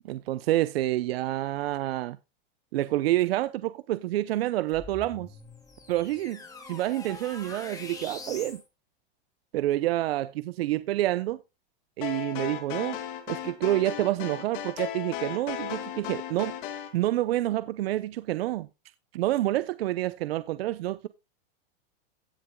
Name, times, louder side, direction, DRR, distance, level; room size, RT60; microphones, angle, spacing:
voice 1, 0.0-2.2 2.7-5.3 5.9-8.6 9.5-11.4 12.0-13.0 13.3-16.5 16.9-18.7 19.1-21.1, right 15 dB, 70° right, 0.7 m, -28 dB
sound 1, 4.7-8.6, left 3 dB, 10° left, 2.1 m, -44 dB
sound 2, 12.0-16.9, left 10 dB, 55° left, 2.5 m, -36 dB
17.0 x 6.9 x 2.2 m
supercardioid pair, 160°, 31 cm